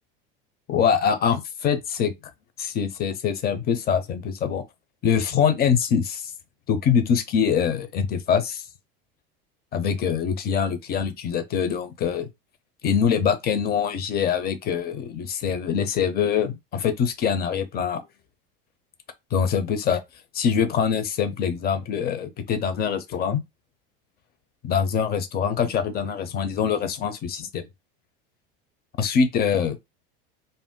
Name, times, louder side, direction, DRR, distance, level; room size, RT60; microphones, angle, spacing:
voice 1, 0.7-2.1 2.6-4.6 5.0-6.3 6.7-8.6 9.7-12.3 12.8-18.0 19.3-20.0 20.3-23.4 24.6-27.7 29.0-29.8, left 7 dB, 35° left, 0.6 m, -24 dB
2.6 x 2.0 x 3.6 m
supercardioid pair, 115°, 29 cm